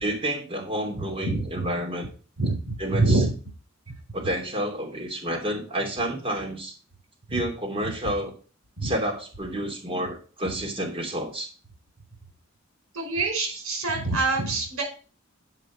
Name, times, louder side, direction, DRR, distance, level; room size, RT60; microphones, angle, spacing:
voice 1, 0.0-2.1 2.8-3.2 4.1-6.7 7.3-8.3 8.8-11.5, right 1 dB, 25° right, 0 dB, 3.0 m, -29 dB
voice 2, 1.2-1.7 2.4-3.3 8.8-8.9 12.9-14.8, right 2 dB, 80° right, 1 dB, 5.2 m, -25 dB
8.2 x 5.4 x 6.2 m, 0.37 s
head